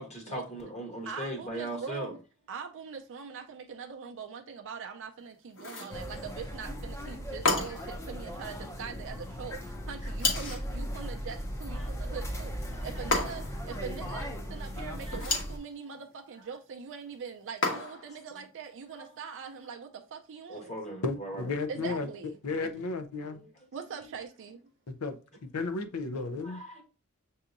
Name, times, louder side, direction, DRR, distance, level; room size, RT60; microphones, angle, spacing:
voice 1, 0.0-2.1 7.7-7.8 11.7-11.9 12.8-13.1 15.0-15.4 18.3-18.4 19.0-19.1 20.5-21.5 23.2-23.7 26.4-26.8, right 1 dB, 30° left, 1.1 m, -40 dB
voice 2, 1.1-2.2 2.5-20.7 21.7-22.4 23.7-24.6, right 6 dB, 60° right, 0.5 m, -42 dB
sound 1, 5.6-6.0 7.4-8.0 10.2-10.7 13.1-13.6 15.1-15.6 17.6-18.1, left 3 dB, 60° left, 1.2 m, -30 dB
sound 2, 5.9-15.6, equal, 15° left, 0.5 m, -38 dB
voice 3, 21.0-22.1 22.4-23.4 25.0-26.6, left 3 dB, 75° left, 0.6 m, -33 dB
6.9 x 2.8 x 2.5 m
head